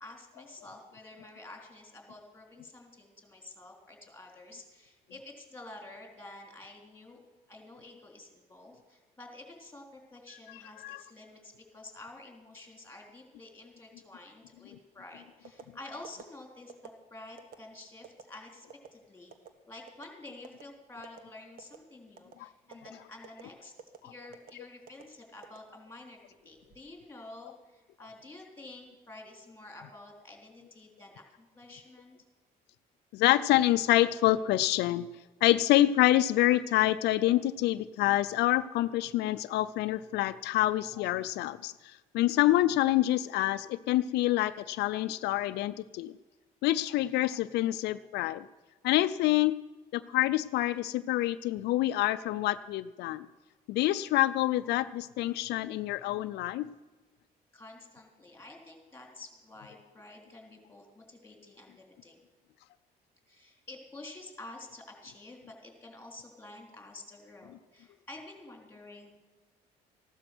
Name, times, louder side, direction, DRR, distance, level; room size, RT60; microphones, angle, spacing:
voice 1, 0.0-7.2 7.5-18.7 18.9-19.3 19.7-23.7 24.0-26.2 26.4-32.2 57.5-62.2 63.3-69.1, left 2 dB, 10° left, 1 dB, 3.8 m, -49 dB
voice 2, 10.5-11.0 22.4-22.5 24.0-24.1 33.1-35.1 35.4-46.1 46.6-48.5 48.8-49.6 49.9-53.3 53.7-56.7, left 15 dB, 80° left, 11 dB, 0.5 m, -27 dB
sound 1, 15.4-15.7 16.0-16.2 16.7-16.9 17.4-17.6 18.0-18.2 18.7-18.9 19.3-19.5 19.9-20.1 20.4-20.6 21.0-21.2 21.6-21.8 22.2-22.4 22.7-22.9 23.2-23.4 23.8-24.0 24.3-24.5 24.9-25.0 25.4-26.1 26.5-26.8, right 7 dB, 60° right, 1.4 m, -48 dB
15.0 x 12.0 x 6.1 m, 1.2 s
cardioid pair, 110°, 17 cm